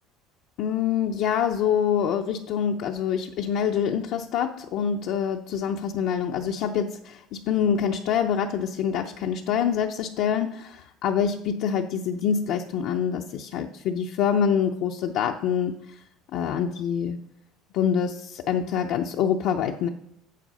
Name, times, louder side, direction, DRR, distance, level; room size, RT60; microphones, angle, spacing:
voice 1, 0.6-15.7 16.3-17.2 17.7-19.9, left 8 dB, 65° left, 3 dB, 0.5 m, -25 dB
7.6 x 7.5 x 5.5 m, 0.77 s
supercardioid pair, 115°, 0 cm